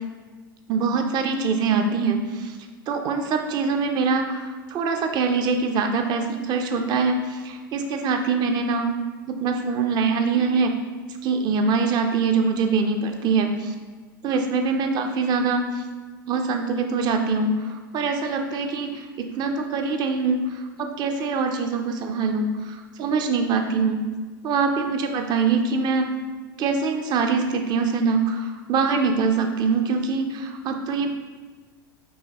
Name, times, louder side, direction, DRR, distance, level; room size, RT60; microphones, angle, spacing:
voice 1, 0.7-2.5 2.9-8.9 9.3-10.8 11.2-13.7 14.2-15.8 16.3-20.4 20.8-24.0 24.4-26.0 26.6-31.1, right 4 dB, 35° right, 5 dB, 0.4 m, -23 dB
4.7 x 2.2 x 2.9 m, 1.4 s
hypercardioid pair, 100°, 12 cm